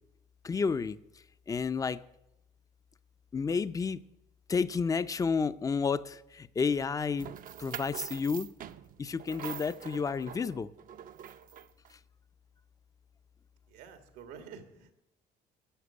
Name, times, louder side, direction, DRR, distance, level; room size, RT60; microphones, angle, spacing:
voice 1, 0.4-1.0 1.5-2.0 3.3-4.0 4.5-7.3 7.6-8.5 9.0-10.7, left 5 dB, 20° left, 14 dB, 0.5 m, -31 dB
sound 1, 7.2-11.9, right 9 dB, 55° right, 0.6 m, -44 dB
voice 2, 13.7-14.9, right 7 dB, 90° right, 7 dB, 1.7 m, -49 dB
11.5 x 7.3 x 9.5 m, 0.86 s
cardioid pair, 110°, 17 cm